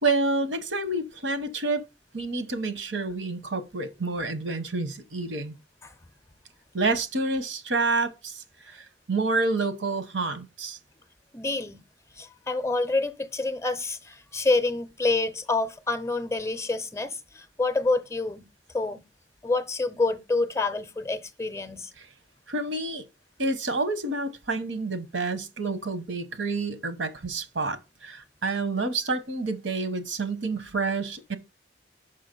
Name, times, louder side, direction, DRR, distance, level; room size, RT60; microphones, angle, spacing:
voice 1, 0.0-1.8 2.1-5.5 6.7-10.8 22.5-23.0 23.4-31.4, right 3 dB, 85° right, 1.1 m, -28 dB
voice 2, 11.3-11.8 12.2-18.5 18.7-19.0 19.4-21.9, left 3 dB, 15° left, 0.5 m, -27 dB
6.0 x 5.6 x 5.3 m
head